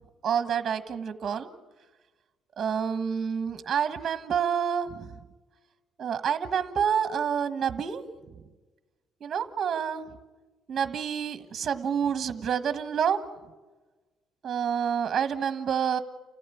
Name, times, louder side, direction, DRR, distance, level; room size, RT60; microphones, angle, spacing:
voice 1, 0.2-1.5 2.6-5.1 6.0-8.0 9.2-10.1 10.7-13.2 14.4-16.0, right 7 dB, 40° right, 10 dB, 1.4 m, -28 dB
29.0 x 15.5 x 8.5 m, 1.3 s
cardioid pair, 115°, 0 cm